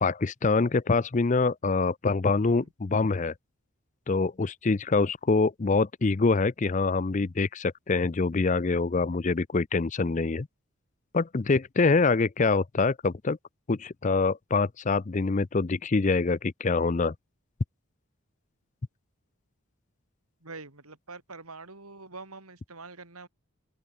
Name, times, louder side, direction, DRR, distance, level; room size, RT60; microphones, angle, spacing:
voice 1, 0.0-3.3 4.1-10.5 11.1-13.4 13.7-17.1, left 3 dB, 35° left, 0.5 m, -25 dB
voice 2, 20.4-23.3, right 3 dB, 90° right, 4.1 m, -45 dB
open air
head